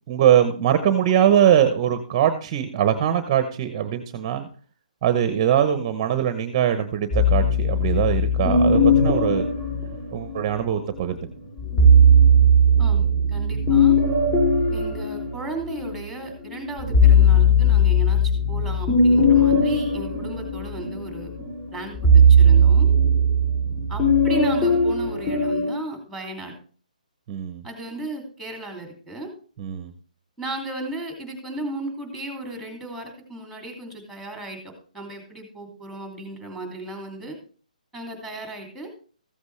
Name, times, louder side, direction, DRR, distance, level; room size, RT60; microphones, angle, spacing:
voice 1, 0.1-4.5 5.0-9.5 10.1-11.3 23.7-23.8 27.3-27.6 29.6-29.9, right 10 dB, 30° right, 9 dB, 0.9 m, -21 dB
sound 1, 7.1-10.6 11.6-16.0 16.4-25.7, equal, 30° left, 3.1 m, -18 dB
voice 2, 12.8-14.0 14.7-21.3 21.7-22.9 23.9-26.5 27.6-29.3 30.4-37.4 37.9-38.9, right 2 dB, ahead, 2 dB, 2.6 m, -35 dB
14.5 x 8.0 x 3.3 m, 0.41 s
hypercardioid pair, 160°, 5 cm